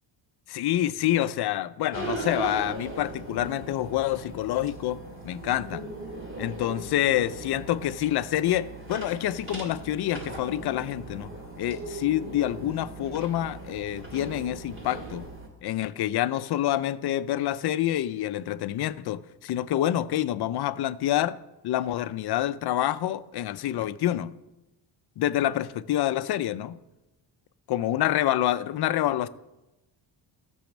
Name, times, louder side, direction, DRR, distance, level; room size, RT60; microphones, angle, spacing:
voice 1, 0.5-5.0 5.2-5.9 6.4-11.3 11.6-15.3 15.6-21.4 21.6-24.4 25.2-26.8 27.7-29.3, left 12 dB, 60° left, 0.6 m, -27 dB
sound 1, 1.9-15.5, right 2 dB, 25° right, 2.2 m, -39 dB
13.5 x 6.3 x 7.2 m
cardioid pair, 165°, 45 cm